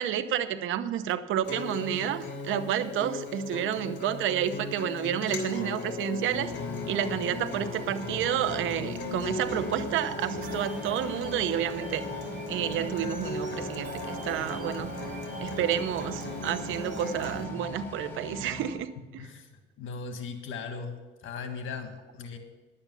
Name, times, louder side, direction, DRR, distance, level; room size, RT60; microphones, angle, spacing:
voice 1, 0.0-6.5 6.9-12.1 12.5-14.9 15.4-19.3, right 10 dB, 85° right, 13 dB, 0.8 m, -30 dB
Acoustic guitar, 1.4-17.4, left 3 dB, 60° left, 2.6 m, -37 dB
sound 1, 6.3-18.7, left 1 dB, 10° left, 4.9 m, -40 dB
sound 2, 10.0-17.1, right 2 dB, 45° right, 3.7 m, -45 dB
voice 2, 19.2-19.5 19.8-20.9 21.2-22.4, left 5 dB, 80° left, 5 dB, 1.6 m, -38 dB
11.5 x 8.7 x 6.8 m, 1.3 s
cardioid pair, 90°, 20 cm